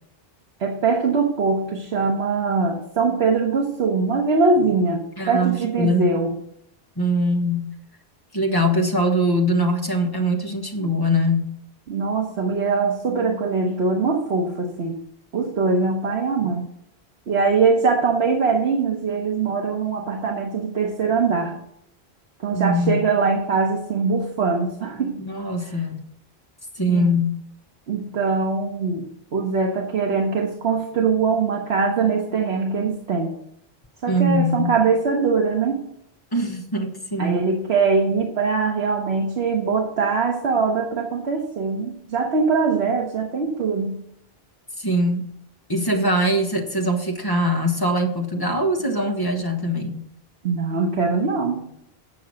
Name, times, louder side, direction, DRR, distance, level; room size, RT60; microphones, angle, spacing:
voice 1, 0.6-6.3 11.9-15.0 15.3-16.6 17.3-21.6 22.4-25.2 25.6-25.7 26.9-27.1 27.9-33.4 34.0-35.8 37.2-44.0 50.4-51.7, right 4 dB, 80° right, 0 dB, 1.4 m, -22 dB
voice 2, 5.2-6.1 7.0-7.7 8.3-11.5 22.5-23.0 25.2-26.0 26.8-27.4 34.1-34.7 36.3-37.4 44.8-45.3 45.7-50.0, equal, 20° left, 2 dB, 1.2 m, -22 dB
8.5 x 5.8 x 6.3 m, 0.74 s
omnidirectional pair, 1.1 m